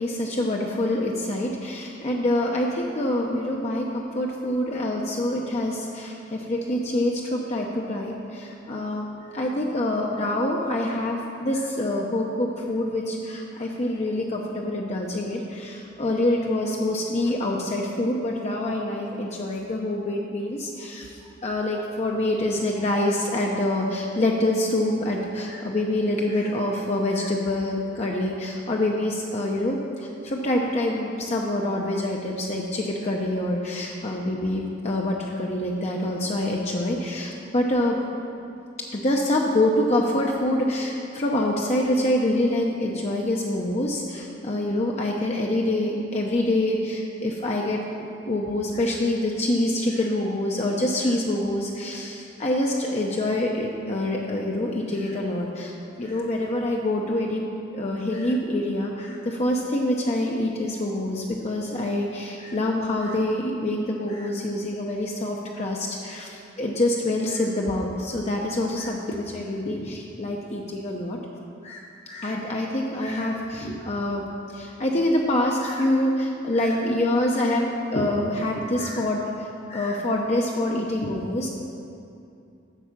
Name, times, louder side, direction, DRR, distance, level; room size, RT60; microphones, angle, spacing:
voice 1, 0.0-9.1 9.3-21.1 21.4-38.0 38.9-47.8 48.3-57.4 57.7-71.2 71.6-74.3 74.5-81.5, left 1 dB, 35° left, -1 dB, 0.7 m, -26 dB
8.2 x 6.1 x 7.3 m, 2.6 s
head